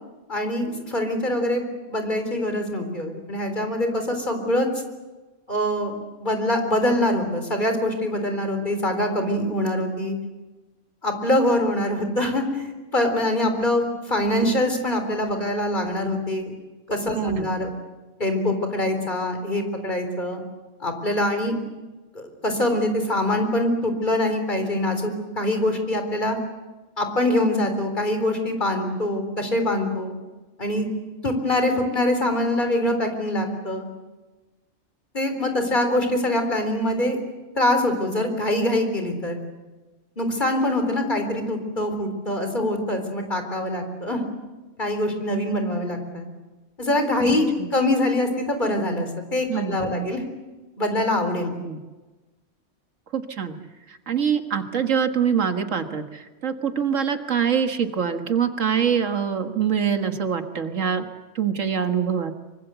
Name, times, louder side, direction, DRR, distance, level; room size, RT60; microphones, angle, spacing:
voice 1, 0.3-4.7 5.5-10.2 11.0-16.5 16.9-17.7 18.2-20.4 20.8-21.6 22.1-26.4 27.0-30.1 30.6-30.9 31.2-33.9 35.1-37.2 37.6-39.4 40.2-44.2 44.8-46.2 46.8-50.2 50.8-51.5, left 1 dB, 40° left, 5 dB, 4.1 m, -24 dB
voice 2, 17.1-17.5 47.3-47.7 49.5-50.1 51.6-51.8 53.1-53.6 53.9-61.1 61.4-62.3, right 7 dB, 90° right, 7 dB, 1.9 m, -24 dB
25.0 x 24.0 x 8.0 m, 1.2 s
omnidirectional pair, 1.3 m